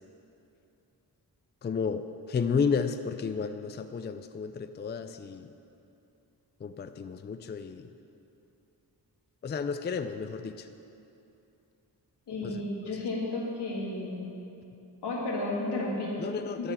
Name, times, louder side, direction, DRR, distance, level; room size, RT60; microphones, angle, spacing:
voice 1, 1.6-5.5 6.6-7.9 9.4-10.7 12.4-12.9 16.2-16.7, left 5 dB, 30° left, 9 dB, 0.4 m, -32 dB
voice 2, 12.3-14.2 15.0-16.2 16.6-16.7, left 2 dB, 85° left, -4 dB, 2.0 m, -32 dB
11.0 x 4.5 x 7.1 m, 2.8 s
cardioid pair, 55°, 40 cm